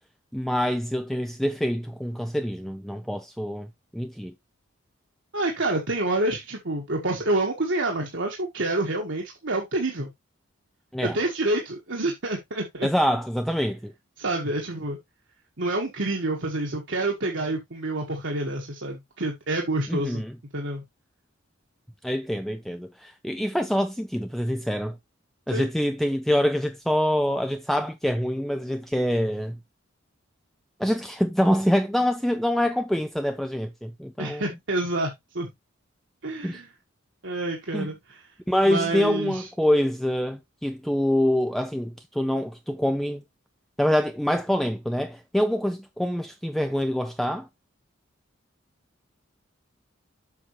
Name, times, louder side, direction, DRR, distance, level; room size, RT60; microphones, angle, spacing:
voice 1, 0.3-3.7 3.9-4.3 10.9-11.2 12.8-13.9 19.9-20.3 22.0-25.0 25.5-29.6 30.8-34.4 36.4-36.6 37.7-37.9 38.5-43.2 43.8-47.5, equal, ahead, 0.4 m, -25 dB
voice 2, 5.3-10.1 11.0-12.9 14.2-15.0 15.6-20.2 20.5-20.8 25.5-25.7 34.2-35.5 36.2-36.7 37.2-38.3 38.6-39.5, right 2 dB, 65° right, 1.6 m, -28 dB
7.3 x 6.1 x 3.1 m
head